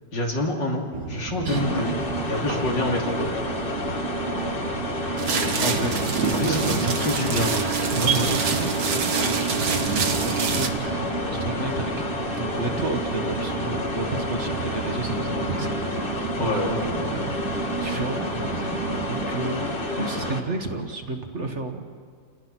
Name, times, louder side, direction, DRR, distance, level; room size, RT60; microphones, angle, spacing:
voice 1, 0.1-2.0 2.3-3.3 5.3-6.0 6.2-7.6 16.4-16.9, left 2 dB, 85° left, -1 dB, 3.5 m, -27 dB
sound 1, 0.9-19.3, right 8 dB, 75° right, 1.5 m, -35 dB
sound 2, 1.5-20.4, left 1 dB, 30° left, 1.7 m, -29 dB
sound 3, 5.2-10.7, right 5 dB, 60° right, 1.8 m, -26 dB
voice 2, 5.5-6.0 6.3-6.9 7.9-11.9 12.3-17.4 17.7-21.8, right 3 dB, 40° right, 5 dB, 1.6 m, -32 dB
29.0 x 19.5 x 6.0 m, 2.1 s
omnidirectional pair, 1.9 m